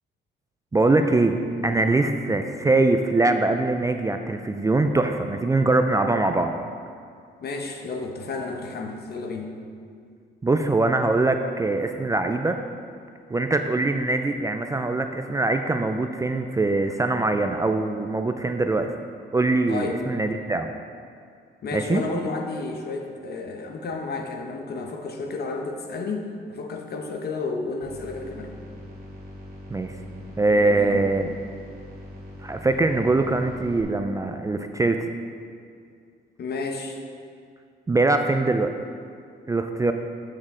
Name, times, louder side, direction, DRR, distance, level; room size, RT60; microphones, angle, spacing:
voice 1, 0.7-1.4 1.6-6.5 10.4-12.6 13.3-18.9 19.3-20.7 21.7-22.0 29.7-30.0 30.4-31.3 32.4-35.1 37.9-38.7 39.5-39.9, right 2 dB, 15° right, 6 dB, 0.3 m, -22 dB
voice 2, 7.4-9.5 19.7-20.0 21.6-28.5 30.5-31.1 36.4-37.0, left 3 dB, 55° left, 3 dB, 1.0 m, -32 dB
sound 1, 27.8-33.8, equal, 50° right, 2.1 m, -42 dB
7.9 x 6.5 x 3.7 m, 2.3 s
cardioid pair, 90°, 20 cm